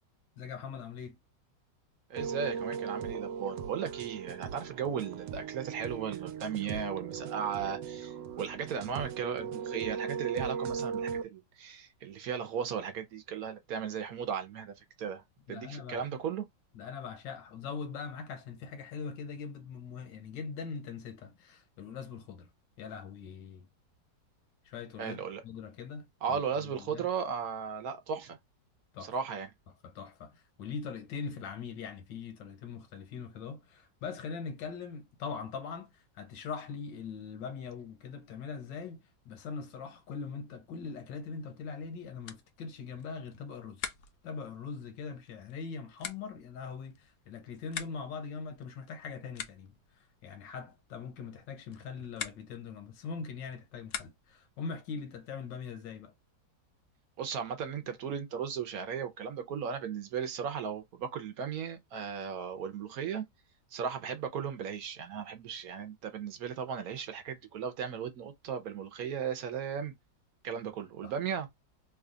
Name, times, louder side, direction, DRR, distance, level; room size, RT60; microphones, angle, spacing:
voice 1, 0.4-1.2 15.5-16.1 16.7-22.5 22.8-23.7 24.6-27.1 28.9-29.1 29.8-43.9 44.2-56.1 71.0-71.1, left 5 dB, 80° left, 1.6 m, -42 dB
voice 2, 2.1-15.2 15.5-16.5 25.0-25.4 26.2-28.4 29.0-29.5 57.2-63.2 63.7-69.9 70.4-71.5, right 7 dB, 65° right, 1.0 m, -36 dB
sound 1, 2.2-11.2, right 7 dB, 85° right, 1.3 m, -38 dB
sound 2, 42.2-54.5, left 8 dB, 65° left, 0.8 m, -47 dB
3.3 x 2.3 x 3.7 m
omnidirectional pair, 1.9 m